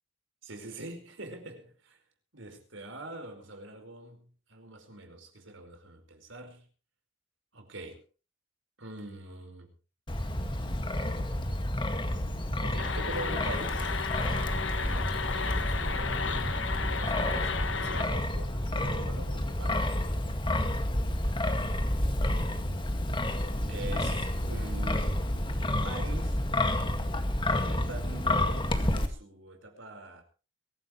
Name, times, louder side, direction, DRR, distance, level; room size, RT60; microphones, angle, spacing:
voice 1, 0.4-2.0 2.3-6.7 7.5-8.0 8.8-9.7 12.6-13.9 14.8-20.0 21.0-21.3 23.7-25.2 25.8-26.4 27.5-30.2, right 2 dB, 70° right, 4.9 m, -44 dB
Wind, 10.1-29.1, left 1 dB, 25° left, 1.9 m, -30 dB
sound 1, 12.8-18.0, left 5 dB, 65° left, 1.4 m, -33 dB
23.0 x 15.0 x 3.2 m
head